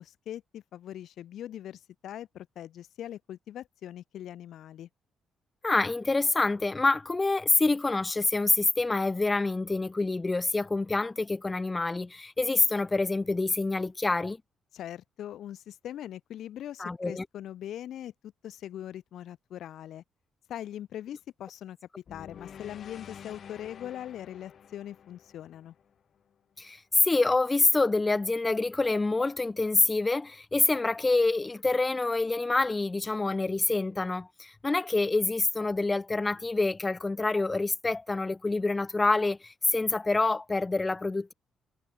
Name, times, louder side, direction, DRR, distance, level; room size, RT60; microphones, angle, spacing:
voice 1, 0.0-4.9 14.7-20.0 20.5-21.8 22.1-25.7, left 11 dB, 75° left, 1.9 m, -41 dB
voice 2, 5.6-14.4 16.8-17.2 26.6-41.3, left 3 dB, 20° left, 1.1 m, -26 dB
sound 1, 22.1-26.3, left 8 dB, 55° left, 6.3 m, -49 dB
cardioid pair, 90°, 0 cm